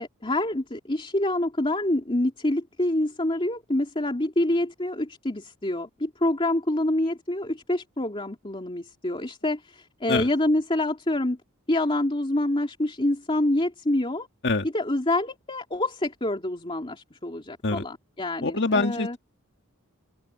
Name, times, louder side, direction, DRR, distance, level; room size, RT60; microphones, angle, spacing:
voice 1, 0.0-11.4 11.7-14.3 14.7-19.2, left 1 dB, 25° left, 2.8 m, -26 dB
voice 2, 18.4-19.2, left 3 dB, 55° left, 2.3 m, -24 dB
open air
head